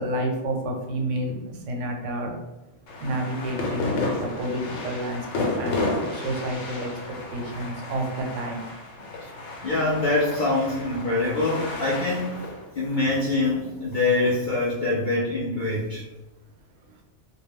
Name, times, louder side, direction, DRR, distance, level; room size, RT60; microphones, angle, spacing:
voice 1, 0.0-2.4 3.0-6.9 7.3-8.6, right 1 dB, 85° right, 2 dB, 0.9 m, -30 dB
sound 1, 2.9-14.3, left 2 dB, 90° left, 1.0 m, -32 dB
voice 2, 9.6-12.3 12.7-16.0, left 2 dB, 60° left, -6 dB, 0.5 m, -24 dB
2.1 x 2.1 x 3.4 m, 1.0 s
omnidirectional pair, 1.2 m